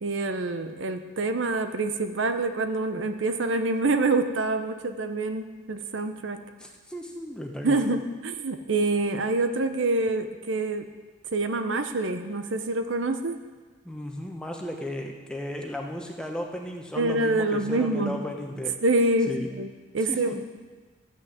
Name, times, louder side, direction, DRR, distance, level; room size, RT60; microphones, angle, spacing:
voice 1, 0.0-6.4 7.6-10.9 11.3-13.4 17.0-18.2 18.8-20.4, right 2 dB, 75° right, 8 dB, 0.7 m, -26 dB
voice 2, 6.6-7.9 13.8-18.8 19.3-19.5 20.1-20.4, equal, 5° left, 1 dB, 0.9 m, -35 dB
13.0 x 6.2 x 7.6 m, 1.4 s
head